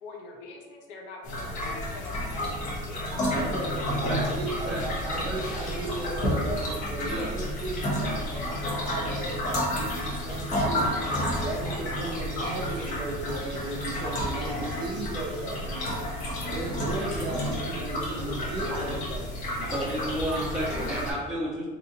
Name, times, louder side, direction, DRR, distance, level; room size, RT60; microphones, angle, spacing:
voice 1, 0.0-3.3 3.8-3.9 18.2-18.8, left 3 dB, 80° left, 1 dB, 0.6 m, -44 dB
sound 1, 1.2-21.1, equal, 45° left, 0.8 m, -31 dB
voice 2, 3.3-3.8 4.0-10.8 11.4-15.9 16.5-19.8, right 2 dB, 25° right, -3 dB, 0.5 m, -36 dB
voice 3, 19.7-21.7, equal, 5° right, -8 dB, 0.9 m, -31 dB
2.8 x 2.5 x 2.7 m, 1.3 s
cardioid pair, 140°, 18 cm